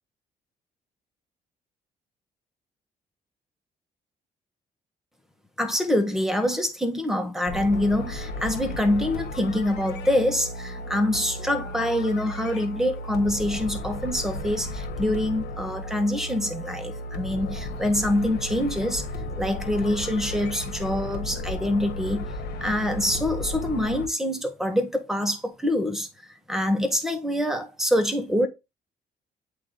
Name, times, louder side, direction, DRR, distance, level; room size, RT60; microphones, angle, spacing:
voice 1, 5.6-19.0 19.4-22.3 22.6-28.5, left 1 dB, ahead, 1.6 m, -25 dB
sound 1, 7.5-24.1, left 1 dB, 80° left, 1.4 m, -34 dB
8.3 x 3.2 x 4.0 m
supercardioid pair, 70°, 17 cm